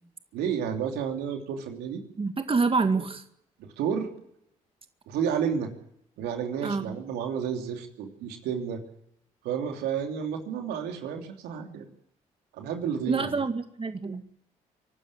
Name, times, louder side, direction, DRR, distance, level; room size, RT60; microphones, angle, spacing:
voice 1, 0.3-2.0 3.0-3.1 3.6-4.1 5.1-5.7 6.2-8.8 9.4-11.9 12.5-13.4, right 7 dB, 75° right, 4 dB, 3.1 m, -31 dB
voice 2, 2.2-3.2 6.6-6.9 13.1-14.2, right 4 dB, 35° right, 8 dB, 2.0 m, -27 dB
24.5 x 12.5 x 9.6 m, 0.75 s
hypercardioid pair, 45°, 17 cm